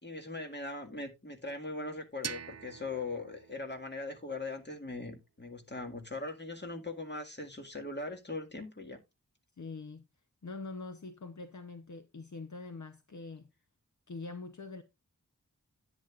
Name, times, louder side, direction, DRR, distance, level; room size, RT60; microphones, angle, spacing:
voice 1, 0.0-9.0, left 2 dB, 30° left, 1.9 m, -40 dB
sound 1, 2.2-5.1, right 7 dB, 50° right, 0.5 m, -46 dB
voice 2, 9.6-10.0 10.4-13.5 14.1-14.8, left 3 dB, 55° left, 0.8 m, -44 dB
10.5 x 9.0 x 2.4 m
wide cardioid pair, 60°, 34 cm